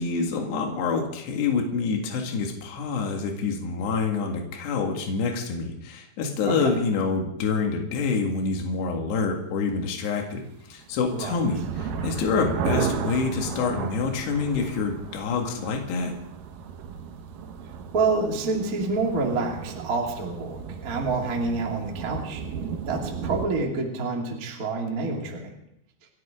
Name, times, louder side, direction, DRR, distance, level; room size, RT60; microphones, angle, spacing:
voice 1, 0.0-16.1, left 4 dB, 65° left, 2 dB, 4.0 m, -27 dB
sound 1, 10.7-23.5, right 7 dB, 70° right, 2.1 m, -34 dB
voice 2, 17.9-22.4 22.8-25.6, right 3 dB, 30° right, 0 dB, 1.9 m, -27 dB
30.0 x 11.0 x 3.8 m, 0.75 s
omnidirectional pair, 5.4 m